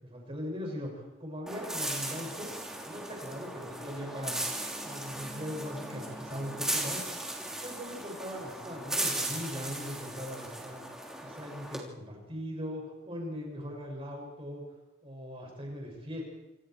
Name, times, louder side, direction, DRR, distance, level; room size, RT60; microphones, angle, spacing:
voice 1, 0.0-2.5 2.9-4.5 4.8-7.0 7.6-10.8 11.2-14.6 15.0-16.2, equal, 25° right, 0 dB, 6.1 m, -40 dB
sound 1, 1.5-11.8, right 1 dB, 5° right, 3.2 m, -37 dB
27.5 x 27.5 x 4.6 m, 1.1 s
head